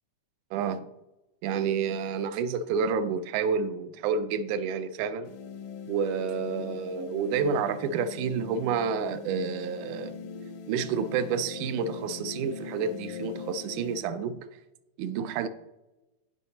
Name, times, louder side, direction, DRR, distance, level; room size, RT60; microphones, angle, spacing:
voice 1, 0.5-0.9 1.4-5.3 5.9-10.2 10.7-14.4 15.0-15.5, right 6 dB, 80° right, 2.0 m, -29 dB
sound 1, 5.2-14.0, left 6 dB, 75° left, 1.4 m, -41 dB
16.0 x 5.5 x 2.8 m
omnidirectional pair, 3.7 m